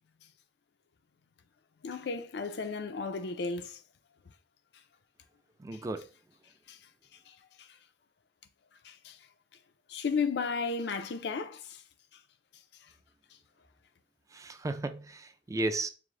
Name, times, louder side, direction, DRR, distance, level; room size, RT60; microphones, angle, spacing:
voice 1, 1.8-3.8 6.7-6.8 7.3-7.4 8.8-9.2 9.9-11.8, left 4 dB, 65° left, 0.4 m, -34 dB
voice 2, 5.6-6.0 14.3-15.9, right 2 dB, 20° right, 0.3 m, -34 dB
4.8 x 2.0 x 3.7 m
head